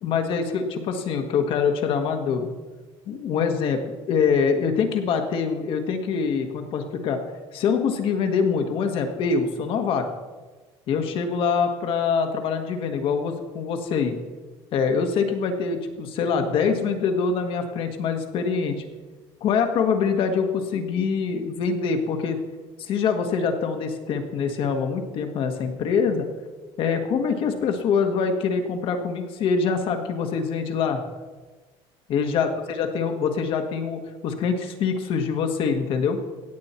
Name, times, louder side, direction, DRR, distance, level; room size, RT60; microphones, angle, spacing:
voice 1, 0.0-2.5 3.1-7.2 7.5-10.0 10.9-14.2 14.7-18.7 19.4-22.4 22.8-26.3 26.8-31.0 32.1-36.2, left 5 dB, 55° left, 5 dB, 1.6 m, -24 dB
16.5 x 8.8 x 4.4 m, 1.3 s
cardioid pair, 150°, 11 cm